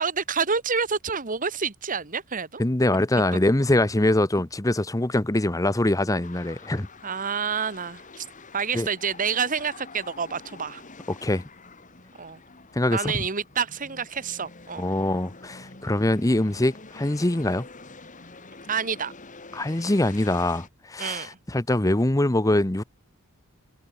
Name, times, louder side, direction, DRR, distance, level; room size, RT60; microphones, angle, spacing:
voice 1, 0.0-2.6 7.0-8.3 8.5-10.8 12.2-12.4 12.9-14.8 18.7-19.1 21.0-21.4, right 6 dB, 40° right, 1.4 m, -28 dB
voice 2, 2.6-6.9 8.7-8.9 11.2-11.4 12.7-13.1 14.8-17.7 19.5-22.8, left 1 dB, 15° left, 0.8 m, -23 dB
sound 1, 6.2-20.7, left 3 dB, 35° left, 2.6 m, -47 dB
head